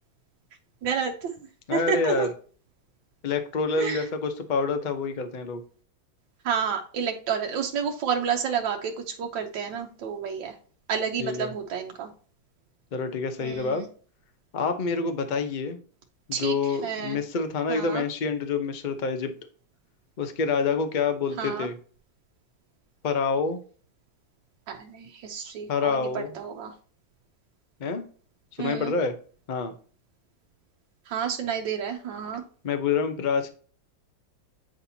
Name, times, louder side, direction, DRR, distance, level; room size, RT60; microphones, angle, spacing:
voice 1, 0.8-1.4 1.7-2.3 3.8-4.0 6.4-10.5 10.9-12.1 13.4-13.9 16.3-17.2 17.7-18.0 21.4-21.7 24.7-26.7 28.6-28.9 31.1-32.4, right 7 dB, 85° right, 2 dB, 1.5 m, -30 dB
voice 2, 1.7-2.3 3.2-5.6 11.2-11.5 12.9-13.8 14.5-15.8 16.3-19.3 20.2-21.7 23.0-23.6 25.7-26.3 27.8-28.0 28.6-29.1 29.5-29.7 32.6-33.5, left 5 dB, 50° left, 7 dB, 0.5 m, -27 dB
8.7 x 4.2 x 2.8 m, 0.42 s
omnidirectional pair, 2.0 m